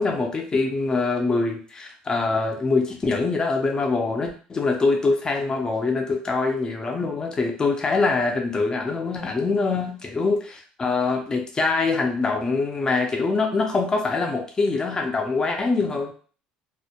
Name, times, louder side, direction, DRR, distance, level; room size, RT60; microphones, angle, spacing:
voice 1, 0.0-16.1, left 3 dB, 25° left, 3 dB, 0.6 m, -24 dB
2.1 x 2.1 x 2.8 m, 0.40 s
supercardioid pair, 105°, 3 cm